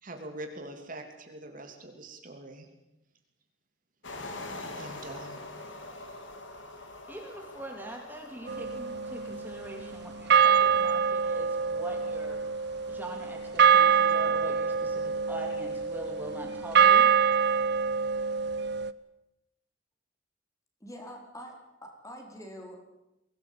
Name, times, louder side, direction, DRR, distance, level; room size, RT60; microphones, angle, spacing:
voice 1, 0.0-2.7 4.8-5.7, right 1 dB, 45° right, 4 dB, 3.2 m, -43 dB
sound 1, 4.0-16.5, left 2 dB, 85° left, 3.7 m, -47 dB
voice 2, 7.1-12.6 12.9-17.1, right 1 dB, 10° right, 1 dB, 3.4 m, -43 dB
sound 2, 8.5-9.8 10.3-18.9, right 7 dB, 60° right, 0.9 m, -25 dB
voice 3, 20.8-21.5 21.8-22.8, equal, 15° left, 2 dB, 4.9 m, -44 dB
23.5 x 18.5 x 8.9 m, 0.90 s
head